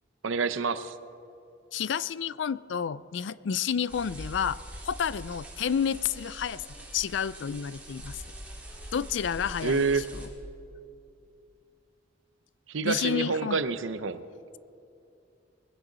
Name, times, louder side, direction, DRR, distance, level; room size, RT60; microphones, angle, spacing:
voice 1, 0.2-1.0 9.6-10.1 12.7-14.3, right 4 dB, 90° right, 13 dB, 0.7 m, -28 dB
voice 2, 1.7-4.6 4.8-6.6 6.9-8.2 8.9-9.8 12.8-13.6, left 7 dB, 65° left, 19 dB, 0.4 m, -30 dB
sound 1, 3.9-10.3, right 1 dB, 10° right, 3.0 m, -43 dB
21.0 x 16.5 x 4.0 m, 2.6 s
head